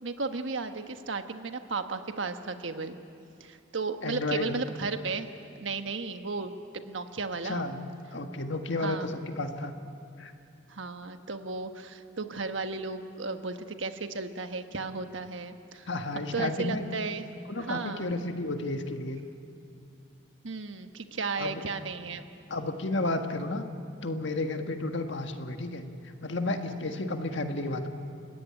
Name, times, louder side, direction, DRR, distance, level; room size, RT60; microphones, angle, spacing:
voice 1, 0.0-3.0 3.4-5.3 5.6-6.5 6.9-7.7 8.8-9.1 10.7-15.9 16.3-17.2 17.7-18.1 20.4-22.2, right 4 dB, 70° right, 7 dB, 1.3 m, -34 dB
voice 2, 4.0-4.5 7.4-7.8 8.1-9.7 10.2-10.3 15.9-16.8 17.5-19.2 21.4-21.6 22.5-23.6 24.0-25.9 26.2-27.9, left 2 dB, 65° left, 6 dB, 1.7 m, -32 dB
30.0 x 16.5 x 9.9 m, 2.6 s
head